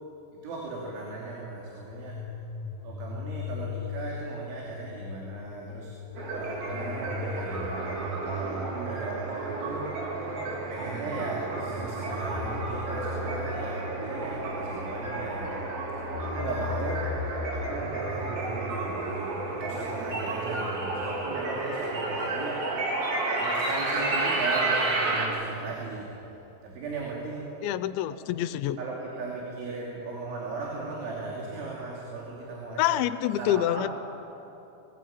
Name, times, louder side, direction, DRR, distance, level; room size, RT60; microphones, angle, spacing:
voice 1, 0.4-2.2 2.8-5.9 6.3-9.9 10.2-10.3 10.7-17.1 17.5-22.6 23.4-26.1 26.6-27.5 28.8-33.0 33.4-33.9, right 3 dB, 85° right, -3 dB, 5.3 m, -37 dB
sound 1, 1.9-21.0, left 3 dB, 55° left, 2.6 m, -39 dB
sound 2, 6.2-25.3, right 2 dB, 55° right, 4.7 m, -32 dB
voice 2, 27.6-28.8 32.8-33.9, left 13 dB, 85° left, 12 dB, 3.0 m, -26 dB
23.0 x 19.0 x 8.8 m, 3.0 s
omnidirectional pair, 5.3 m